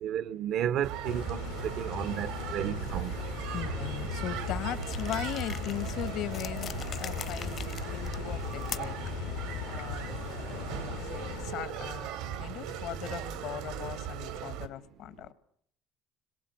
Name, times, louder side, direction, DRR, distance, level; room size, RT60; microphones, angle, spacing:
voice 1, 0.0-3.1, right 10 dB, 65° right, 0.9 m, -32 dB
sound 1, 0.8-14.7, right 9 dB, 85° right, 2.4 m, -38 dB
sound 2, 1.0-11.5, left 10 dB, 90° left, 2.1 m, -39 dB
voice 2, 3.5-9.0 9.6-10.2 10.6-12.1 12.4-15.3, left 12 dB, 70° left, 1.7 m, -39 dB
sound 3, 4.8-9.1, left 8 dB, 50° left, 1.0 m, -43 dB
26.5 x 21.5 x 7.9 m
cardioid pair, 105°, 0 cm